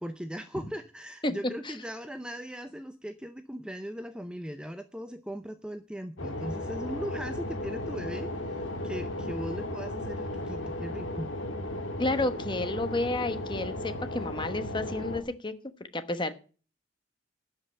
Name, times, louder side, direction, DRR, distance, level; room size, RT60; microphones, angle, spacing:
voice 1, 0.0-11.3, equal, 5° right, 9 dB, 0.5 m, -39 dB
sound 1, 6.2-15.2, left 1 dB, 75° left, 1.9 m, -35 dB
voice 2, 12.0-15.5 15.9-16.3, left 2 dB, 25° left, 10 dB, 1.1 m, -31 dB
12.0 x 5.5 x 8.7 m, 0.38 s
head